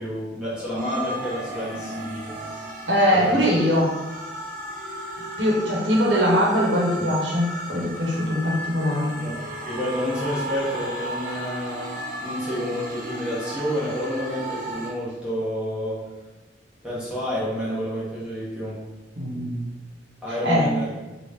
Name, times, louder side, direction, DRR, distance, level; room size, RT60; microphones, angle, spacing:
voice 1, 0.0-2.4 3.1-3.5 9.2-9.3 9.7-11.9 12.2-16.1 16.8-18.8 20.2-20.9, equal, 5° right, -9 dB, 0.8 m, -29 dB
sound 1, 0.8-14.9, right 1 dB, 50° right, 0.6 m, -34 dB
voice 2, 2.9-3.9 5.4-9.1 19.2-19.6 20.4-20.7, equal, 90° right, -3 dB, 0.9 m, -21 dB
3.0 x 2.4 x 3.4 m, 1.1 s
head